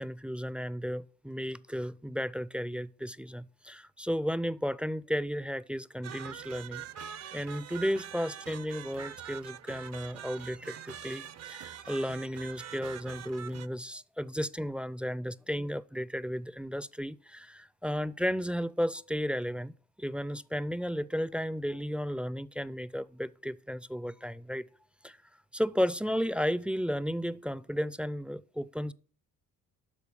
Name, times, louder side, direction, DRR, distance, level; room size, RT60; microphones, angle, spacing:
voice 1, 0.0-6.8 7.3-19.7 20.0-24.6 25.0-25.2 25.5-28.9, equal, 5° right, 0.4 m, -34 dB
sound 1, 6.0-13.7, right 9 dB, 40° right, 0.6 m, -44 dB
12.5 x 4.4 x 6.9 m
hypercardioid pair, 60°, 38 cm